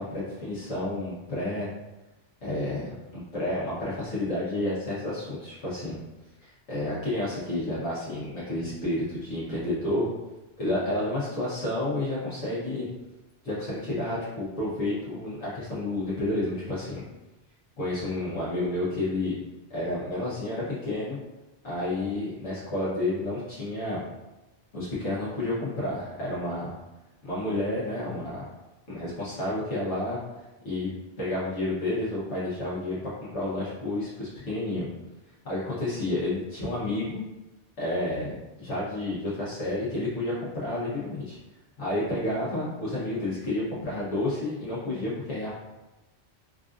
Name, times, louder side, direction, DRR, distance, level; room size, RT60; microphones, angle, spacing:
voice 1, 0.0-1.7 2.4-6.0 6.4-10.1 10.6-12.9 13.4-17.0 17.8-19.4 19.7-21.2 21.6-24.0 24.7-26.8 27.2-28.5 28.9-30.2 30.6-30.9 31.2-33.0 33.3-34.8 35.4-37.2 37.8-41.4 41.8-45.5, left 1 dB, 85° left, -10 dB, 1.4 m, -30 dB
4.1 x 2.4 x 2.5 m, 1.0 s
omnidirectional pair, 1.2 m